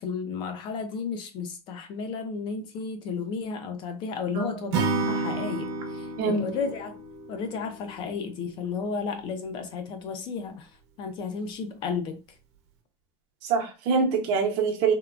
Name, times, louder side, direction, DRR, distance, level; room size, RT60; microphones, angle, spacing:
voice 1, 0.0-7.0 7.3-10.7 11.0-12.2, left 5 dB, 35° left, 0.4 m, -33 dB
Acoustic guitar / Strum, 4.7-8.0, right 3 dB, 90° right, 0.9 m, -30 dB
voice 2, 13.4-14.9, right 5 dB, 55° right, 0.9 m, -24 dB
3.5 x 2.1 x 2.4 m
supercardioid pair, 170°, 14 cm